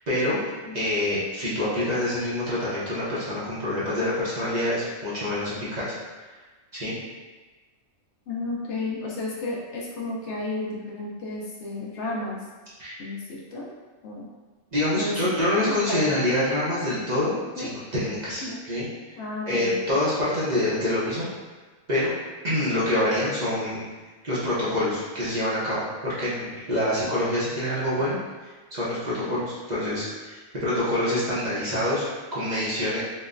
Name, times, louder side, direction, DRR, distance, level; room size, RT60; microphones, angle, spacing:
voice 1, 0.1-0.4 0.7-5.9 6.7-6.9 12.8-13.0 14.7-18.9 19.5-21.3 21.9-22.1 22.4-23.9 24.2-28.2 28.7-32.0 32.3-33.0, left 1 dB, 40° right, -10 dB, 0.7 m, -26 dB
voice 2, 8.3-12.4 13.0-13.7 14.0-14.3 15.0-16.1 17.6-17.7 18.4-18.6 19.2-19.8, left 2 dB, 65° left, -4 dB, 0.8 m, -32 dB
3.8 x 2.1 x 2.4 m, 1.3 s
omnidirectional pair, 1.4 m